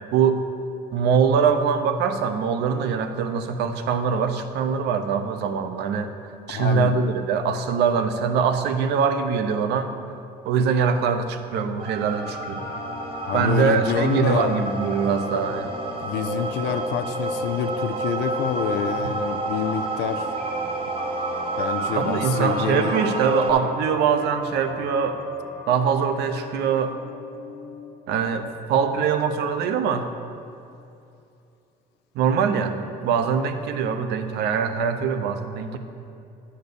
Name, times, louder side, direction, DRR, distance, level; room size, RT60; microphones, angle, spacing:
voice 1, 0.1-0.4 0.9-6.1 6.5-9.9 10.4-12.6 13.3-15.7 19.0-19.1 21.9-25.2 25.7-26.9 28.1-30.1 32.1-35.8, right 6 dB, 80° right, 8 dB, 0.7 m, -23 dB
voice 2, 6.5-6.9 13.3-14.5 16.0-20.3 21.6-23.0, left 9 dB, 85° left, 9 dB, 0.5 m, -27 dB
sound 1, 11.8-23.5, right 2 dB, 35° right, 0.8 m, -29 dB
sound 2, 12.1-29.4, left 4 dB, 60° left, 1.3 m, -40 dB
9.3 x 4.3 x 6.8 m, 2.7 s
cardioid pair, 110°, 17 cm